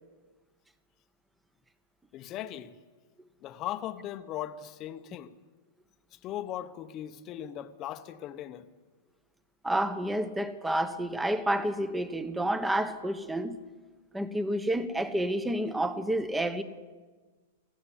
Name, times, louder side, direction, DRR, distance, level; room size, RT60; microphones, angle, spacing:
voice 1, 2.1-2.8 3.4-5.3 6.2-8.7, left 11 dB, 35° left, 1.0 m, -38 dB
voice 2, 9.6-13.6 14.1-16.6, right 1 dB, 5° right, 1.2 m, -29 dB
18.0 x 14.5 x 10.0 m
hypercardioid pair, 135°, 0 cm